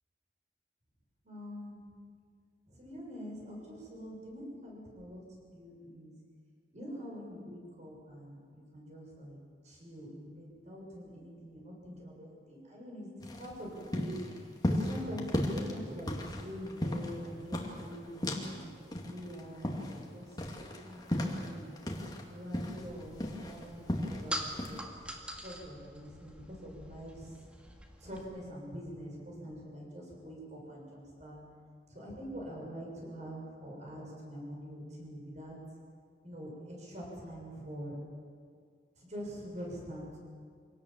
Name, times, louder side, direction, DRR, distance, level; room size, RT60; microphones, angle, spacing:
voice 1, 1.2-1.8 2.7-6.1 6.7-9.4 9.6-18.5 19.0-21.7 22.3-24.8 25.4-27.4 28.0-31.4 31.9-35.5 36.2-38.0 39.0-40.2, equal, 40° right, -2 dB, 7.2 m, -45 dB
sound 1, 13.2-18.6 18.9-22.2 22.5-24.2 24.6-24.8, left 1 dB, 25° left, 2.3 m, -35 dB
sound 2, 22.7-28.2, equal, 5° right, 2.0 m, -44 dB
25.0 x 18.0 x 7.5 m, 2.1 s
head